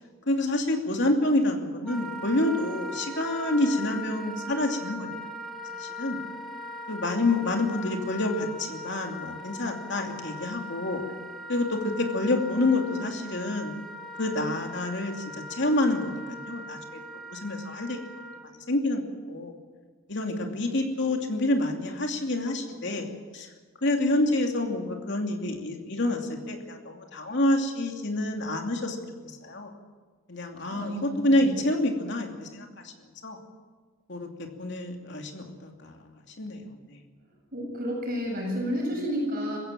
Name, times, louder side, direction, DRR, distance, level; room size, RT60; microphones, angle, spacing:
voice 1, 0.3-5.1 5.7-6.2 6.9-11.0 11.5-13.8 14.2-18.0 18.7-19.0 19.3-19.5 20.1-23.1 23.3-23.5 23.8-29.0 29.2-29.7 30.3-32.9 33.2-33.4 34.1-36.1 36.4-37.0, left 1 dB, 60° left, 2 dB, 2.7 m, -28 dB
Wind instrument woodwind instrument, 1.9-18.4, left 1 dB, ahead, 2.6 m, -40 dB
voice 2, 30.7-31.5 37.5-39.6, equal, 45° right, -1 dB, 8.0 m, -31 dB
21.0 x 15.5 x 9.0 m, 1.4 s
head